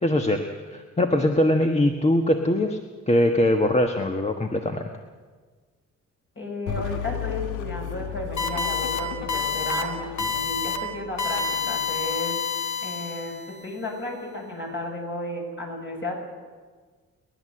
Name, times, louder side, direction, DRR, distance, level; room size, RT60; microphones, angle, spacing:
voice 1, 0.0-0.4 0.7-2.8 3.1-4.9, left 1 dB, 20° left, 5 dB, 1.3 m, -22 dB
voice 2, 6.4-12.4 12.8-16.1, left 1 dB, 40° left, 0 dB, 7.2 m, -33 dB
sound 1, 6.7-12.1, left 8 dB, 90° left, 1.4 m, -35 dB
sound 2, 8.4-9.0 9.3-9.8 10.2-10.8 11.2-13.5, left 6 dB, 65° left, 2.3 m, -28 dB
29.5 x 11.5 x 7.7 m, 1.5 s
cardioid pair, 90°, 30 cm